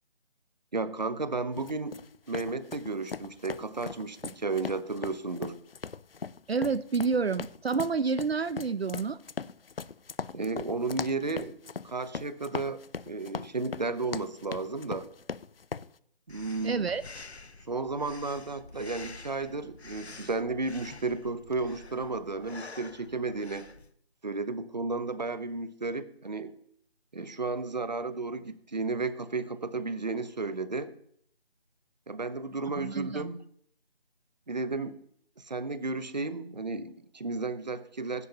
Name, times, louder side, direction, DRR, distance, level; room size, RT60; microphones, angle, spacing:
voice 1, 0.7-2.0 2.3-5.6 10.3-15.1 16.3-16.8 17.7-23.7 24.2-26.5 27.1-30.9 32.1-33.4 34.5-35.0 35.4-38.3, right 3 dB, 45° right, 13 dB, 0.9 m, -33 dB
sound 1, 1.6-15.9, left 5 dB, 60° left, 0.5 m, -40 dB
voice 2, 6.5-9.2 16.6-17.0 32.8-33.3, right 5 dB, 70° right, 14 dB, 0.7 m, -29 dB
Breathing, 16.3-23.9, left 3 dB, 85° left, 1.2 m, -48 dB
23.5 x 11.0 x 2.9 m, 0.65 s
figure-of-eight pair, 170°, 32 cm